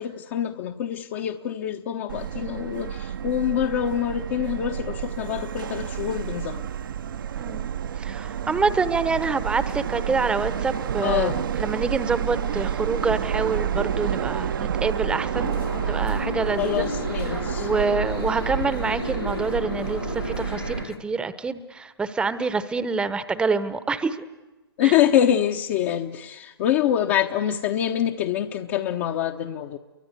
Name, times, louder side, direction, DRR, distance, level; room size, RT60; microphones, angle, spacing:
voice 1, 0.0-6.6 11.0-11.4 16.6-17.7 24.8-29.8, left 10 dB, 35° left, 2 dB, 1.0 m, -25 dB
Subway metro underground, 2.1-20.8, right 8 dB, 60° right, 1.0 m, -29 dB
voice 2, 7.4-7.7 8.0-11.3 11.6-15.6 15.9-16.9 17.3-24.2 24.8-25.0, right 4 dB, 5° right, 13 dB, 1.0 m, -26 dB
sound 1, 15.4-21.0, left 3 dB, 90° left, 4.7 m, -33 dB
29.5 x 24.0 x 8.2 m, 1.2 s
figure-of-eight pair, 130°, 13 cm